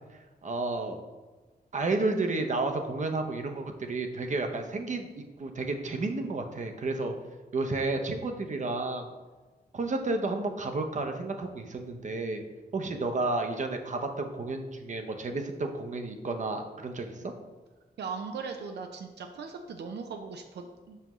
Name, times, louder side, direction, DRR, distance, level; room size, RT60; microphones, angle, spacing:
voice 1, 0.4-1.0 1.7-7.1 7.5-9.1 9.7-12.4 12.7-17.3, right 3 dB, 45° right, 5 dB, 0.6 m, -31 dB
voice 2, 18.0-21.0, right 5 dB, 90° right, 5 dB, 0.5 m, -39 dB
6.1 x 5.6 x 3.0 m, 1.3 s
wide cardioid pair, 130°, 17 cm